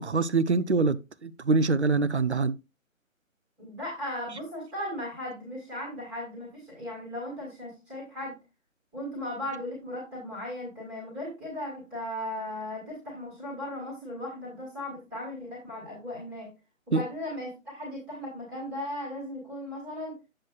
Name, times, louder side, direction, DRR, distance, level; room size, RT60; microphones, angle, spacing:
voice 1, 0.0-2.6 16.9-17.0, right 3 dB, 55° right, 0.7 m, -25 dB
voice 2, 3.6-8.4 8.9-16.5 16.9-20.1, left 1 dB, 5° right, 1.6 m, -37 dB
9.9 x 7.7 x 2.4 m
figure-of-eight pair, 155°, 41 cm